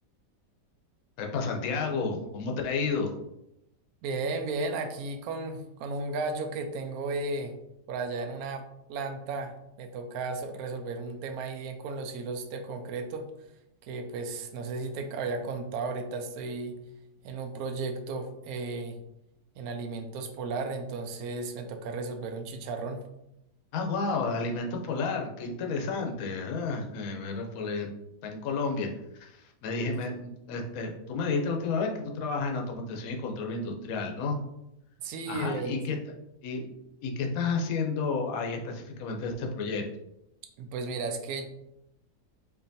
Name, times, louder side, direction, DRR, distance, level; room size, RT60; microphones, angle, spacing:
voice 1, 1.2-3.1 23.7-27.9 28.2-28.9 29.1-34.4 35.3-36.0 36.4-36.7 37.0-39.8, left 4 dB, 65° left, 2 dB, 1.0 m, -31 dB
voice 2, 4.0-7.5 7.9-13.3 13.8-16.8 17.2-19.0 19.6-23.0 35.0-35.8 40.6-41.5, right 3 dB, 70° right, 6 dB, 0.9 m, -34 dB
4.5 x 2.8 x 2.7 m, 0.85 s
omnidirectional pair, 1.8 m